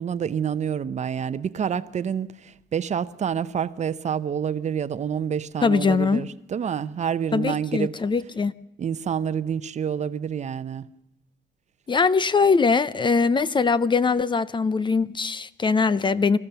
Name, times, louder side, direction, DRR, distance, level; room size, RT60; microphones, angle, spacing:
voice 1, 0.0-7.9 8.8-10.9, right 8 dB, 45° right, 0.8 m, -28 dB
voice 2, 5.6-6.2 7.3-8.5 11.9-16.4, left 4 dB, 25° left, 0.7 m, -21 dB
26.0 x 14.5 x 6.9 m
cardioid pair, 100°, 17 cm